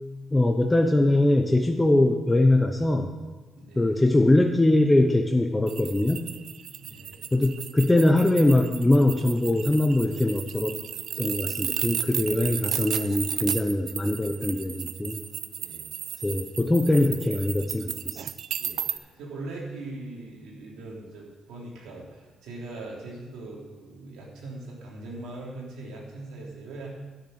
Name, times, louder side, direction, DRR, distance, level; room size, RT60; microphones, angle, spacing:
voice 1, 0.3-3.1 3.8-6.3 7.3-10.7 11.2-15.2 16.2-18.2, left 1 dB, 15° left, 4 dB, 0.8 m, -22 dB
voice 2, 3.6-4.0 6.8-7.2 15.6-16.3 18.6-26.9, right 2 dB, 85° right, -3 dB, 3.4 m, -41 dB
sound 1, 5.7-19.0, right 9 dB, 70° right, 0.5 m, -34 dB
10.5 x 6.7 x 7.9 m, 1.2 s
cardioid pair, 90°, 0 cm